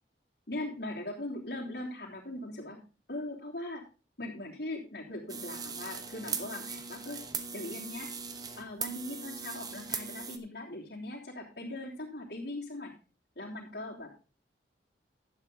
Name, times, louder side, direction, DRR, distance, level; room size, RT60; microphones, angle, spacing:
voice 1, 0.5-2.8 3.1-3.8 4.2-7.2 7.5-8.1 8.6-12.9 13.3-14.1, left 1 dB, 65° left, -6 dB, 3.1 m, -40 dB
sound 1, 5.3-10.4, right 5 dB, 20° right, 1.0 m, -39 dB
11.5 x 9.3 x 3.8 m, 0.33 s
head